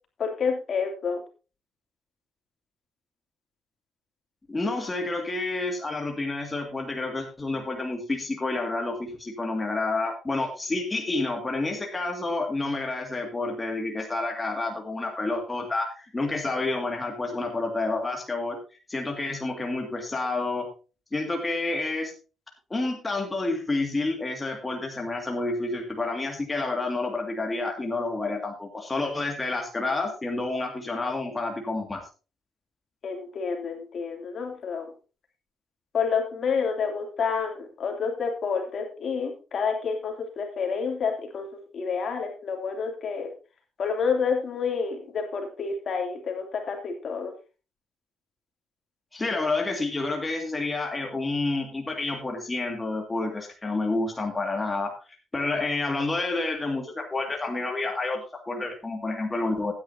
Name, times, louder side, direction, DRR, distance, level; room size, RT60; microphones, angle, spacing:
voice 1, 0.2-1.2 33.0-34.9 35.9-41.5 41.7-43.3 43.8-47.3, left 5 dB, 55° left, 3 dB, 2.8 m, -29 dB
voice 2, 4.5-18.6 18.9-20.7 21.1-22.1 22.7-32.0 49.1-54.9 55.3-59.7, left 2 dB, 20° left, 2 dB, 2.2 m, -29 dB
15.0 x 9.7 x 2.8 m, 0.33 s
cardioid pair, 90°, 0 cm